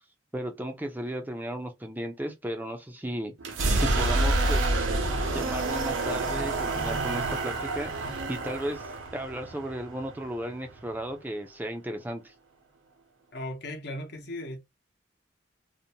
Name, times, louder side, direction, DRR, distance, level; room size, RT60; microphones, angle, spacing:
voice 1, 0.3-3.3 3.8-4.9 5.3-12.3, right 1 dB, 10° right, 0.4 m, -35 dB
sound 1, 3.4-11.1, right 2 dB, 90° right, 0.8 m, -28 dB
voice 2, 13.3-14.6, left 1 dB, 60° left, 0.8 m, -37 dB
2.6 x 2.1 x 2.6 m
head